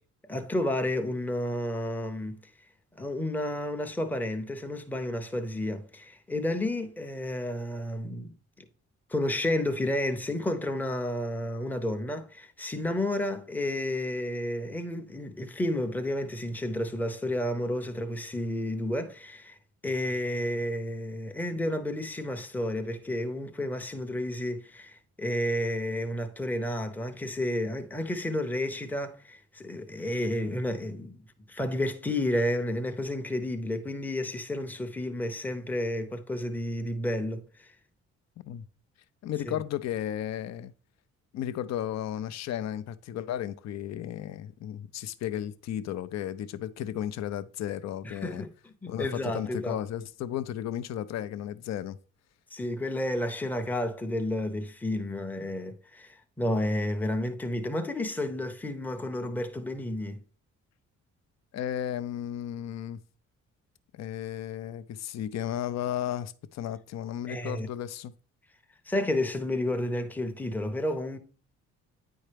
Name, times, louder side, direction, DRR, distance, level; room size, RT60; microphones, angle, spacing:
voice 1, 0.3-2.4 3.0-8.3 9.1-19.6 19.8-31.2 31.5-37.7 48.0-48.5 48.8-49.8 52.5-60.2 67.3-67.7 68.9-71.2, left 1 dB, 5° left, 0.6 m, -31 dB
voice 2, 39.2-40.7 41.3-48.4 48.9-52.0 61.5-63.0 63.9-68.1, left 11 dB, 60° left, 0.5 m, -34 dB
9.1 x 4.3 x 3.3 m
cardioid pair, 90°, 30 cm